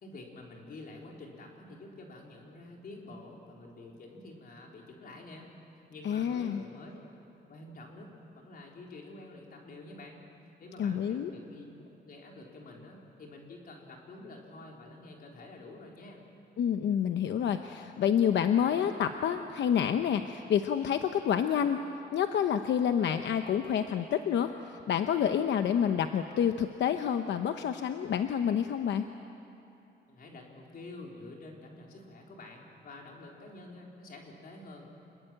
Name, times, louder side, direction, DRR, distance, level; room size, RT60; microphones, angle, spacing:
voice 1, 0.0-5.5 5.9-7.0 7.5-10.2 10.6-16.2 30.1-34.9, left 2 dB, 55° left, -1 dB, 4.2 m, -48 dB
voice 2, 6.0-6.6 10.8-11.3 16.6-21.8 22.1-29.0, left 8 dB, 90° left, 7 dB, 0.9 m, -28 dB
27.0 x 21.5 x 9.0 m, 2.9 s
wide cardioid pair, 175°, 18 cm